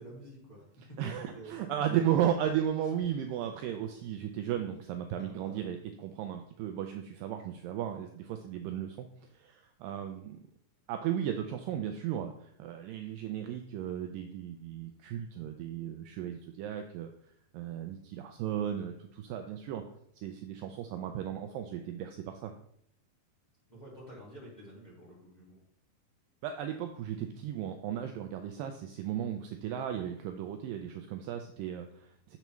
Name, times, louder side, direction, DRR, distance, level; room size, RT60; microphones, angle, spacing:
voice 1, 0.0-1.5 5.2-5.6 23.7-25.6, right 1 dB, 20° left, -6 dB, 1.3 m, -49 dB
voice 2, 1.0-5.8 6.2-6.9 7.2-7.4 7.6-8.1 8.5-8.9 9.8-10.2 10.9-12.3 12.6-17.1 17.6-18.0 18.4-18.9 19.3-19.8 20.2-20.5 20.9-21.8 26.4-26.7 27.1-27.2 27.4-28.7 29.0-30.8 31.1-31.8, right 10 dB, 85° right, 6 dB, 1.9 m, -34 dB
7.1 x 6.7 x 3.1 m, 0.69 s
omnidirectional pair, 4.5 m